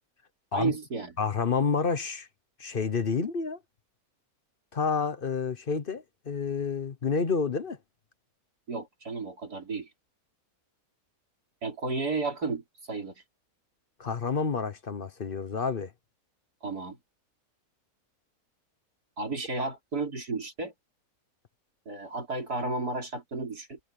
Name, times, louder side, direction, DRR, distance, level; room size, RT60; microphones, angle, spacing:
voice 1, 0.5-1.1 8.7-9.9 11.6-13.1 16.6-17.0 19.2-20.7 21.9-23.8, right 3 dB, 90° right, 4.9 m, -33 dB
voice 2, 1.2-2.3 2.6-3.6 4.7-7.8 14.0-15.9, left 5 dB, 40° left, 1.0 m, -29 dB
omnidirectional pair, 1.6 m